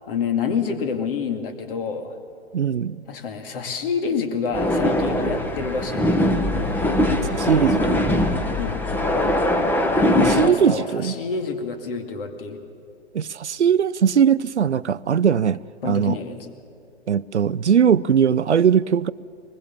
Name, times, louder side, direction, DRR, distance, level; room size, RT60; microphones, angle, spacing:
voice 1, 0.1-2.2 3.1-6.3 8.6-8.9 9.9-12.6 15.8-16.5, left 6 dB, 55° left, 2.3 m, -27 dB
voice 2, 2.5-3.0 7.1-8.0 10.2-11.1 13.1-15.6 15.8-16.2 17.1-19.1, right 8 dB, 90° right, 0.5 m, -20 dB
sound 1, 4.5-10.5, left 1 dB, 5° left, 1.0 m, -21 dB
21.5 x 20.0 x 7.1 m
figure-of-eight pair, 120°, 33 cm